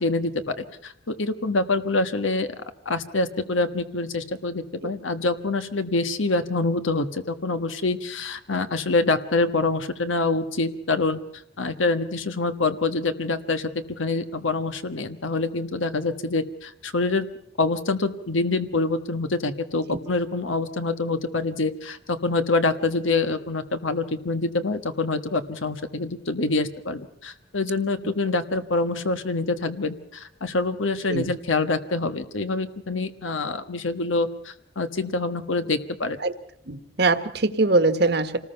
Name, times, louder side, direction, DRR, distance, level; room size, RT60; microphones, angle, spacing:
voice 1, 0.0-2.5 2.8-11.2 11.6-13.7 14.0-17.3 17.6-36.2, left 3 dB, 80° left, 9 dB, 1.3 m, -26 dB
voice 2, 36.7-38.4, right 3 dB, 55° right, 10 dB, 1.4 m, -22 dB
27.5 x 19.5 x 5.7 m, 0.69 s
head